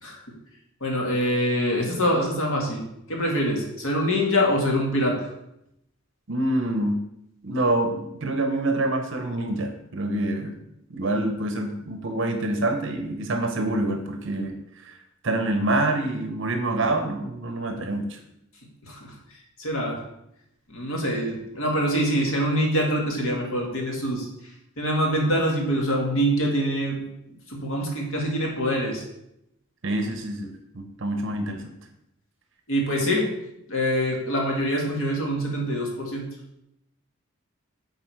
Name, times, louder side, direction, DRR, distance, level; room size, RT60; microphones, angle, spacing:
voice 1, 0.0-0.3 0.8-2.8 3.1-5.3 18.9-19.1 19.6-20.0 20.7-24.3 24.8-27.0 27.5-29.0 32.7-33.3 33.7-36.3, equal, 75° left, 0 dB, 1.8 m, -24 dB
voice 2, 6.3-7.0 7.4-10.5 10.9-15.0 15.2-18.2 29.8-30.5 30.7-31.6, right 2 dB, 60° right, 5 dB, 0.8 m, -26 dB
8.4 x 4.0 x 4.6 m, 0.82 s
head